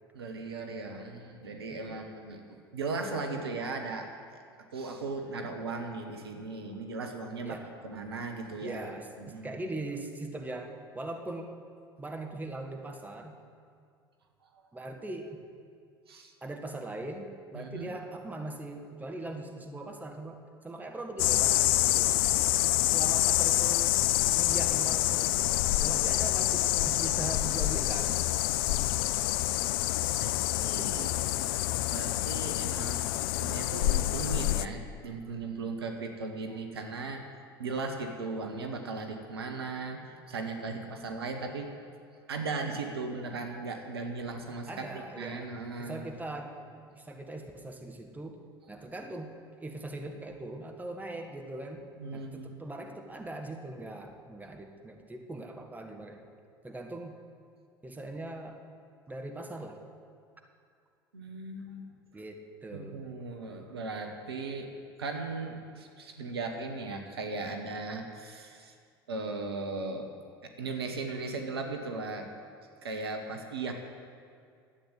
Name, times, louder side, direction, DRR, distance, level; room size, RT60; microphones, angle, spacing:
voice 1, 0.1-2.4 2.7-4.4 4.7-7.6 7.8-8.9 9.2-9.5 16.1-16.3 17.5-17.9 22.1-22.8 30.2-31.1 31.9-37.2 37.6-41.7 42.3-46.1 52.0-52.5 61.1-61.9 62.7-64.7 65.0-68.7 69.1-70.1 70.4-72.3 72.8-73.7, right 3 dB, 80° right, 4 dB, 1.2 m, -37 dB
voice 2, 7.4-7.9 8.6-11.5 12.0-13.3 14.7-15.4 16.4-20.4 20.6-22.2 22.9-24.0 24.3-25.4 25.8-28.2 30.6-31.2 40.9-41.3 44.7-48.4 48.7-49.3 49.6-51.9 52.1-56.2 56.6-57.1 57.8-58.6 59.1-59.8 62.1-63.0, right 2 dB, 10° right, 3 dB, 1.6 m, -41 dB
sound 1, 21.2-34.7, left 16 dB, 60° left, 0.4 m, -27 dB
11.5 x 8.7 x 8.1 m, 2.3 s
figure-of-eight pair, 70°, 13 cm